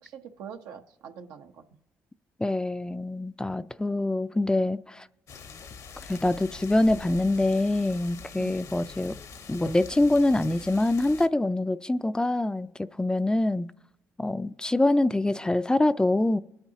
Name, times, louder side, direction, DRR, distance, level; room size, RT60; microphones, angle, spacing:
voice 1, 0.0-1.6 8.4-8.6 13.3-13.4, right 7 dB, 80° right, 0.9 m, -44 dB
voice 2, 2.4-5.1 6.1-9.2 9.5-13.7 14.2-16.4, left 2 dB, 15° left, 0.4 m, -25 dB
sound 1, 5.3-11.3, left 6 dB, 65° left, 1.0 m, -44 dB
21.5 x 9.0 x 2.8 m
supercardioid pair, 60°, 6 cm